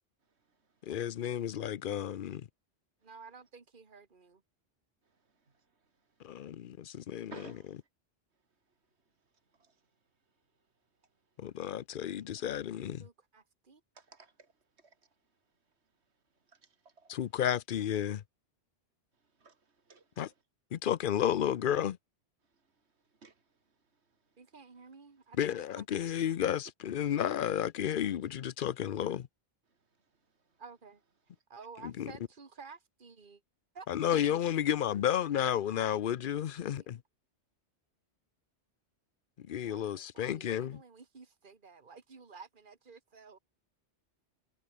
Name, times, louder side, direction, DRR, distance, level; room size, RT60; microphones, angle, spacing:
voice 1, 0.9-2.5 6.2-7.3 11.4-13.1 17.1-18.2 20.2-20.3 20.7-22.0 25.4-29.3 32.0-32.1 33.9-37.0 39.4-40.8, left 10 dB, 55° left, 0.7 m, -32 dB
voice 2, 3.0-4.4 13.0-13.8 17.5-17.6 24.4-26.4 30.6-31.0 31.5-33.4 33.7-33.9 34.1-34.2 35.7-36.0 36.3-36.9 39.6-43.4, right 5 dB, 45° right, 2.0 m, -53 dB
voice 3, 7.3-7.8 9.6-9.8 13.9-14.5 14.8-15.1 16.5-17.1 19.4-20.2 23.2-23.4, right 4 dB, 70° right, 2.7 m, -55 dB
omnidirectional pair, 1.2 m